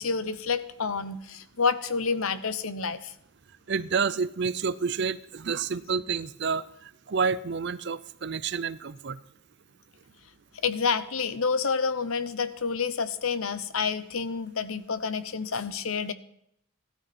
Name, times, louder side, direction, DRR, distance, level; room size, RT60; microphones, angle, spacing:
voice 1, 0.0-3.1 10.6-16.1, left 5 dB, 70° left, 12 dB, 0.9 m, -29 dB
voice 2, 3.7-9.2, right 5 dB, 50° right, 16 dB, 0.5 m, -29 dB
16.5 x 12.5 x 4.3 m, 0.75 s
head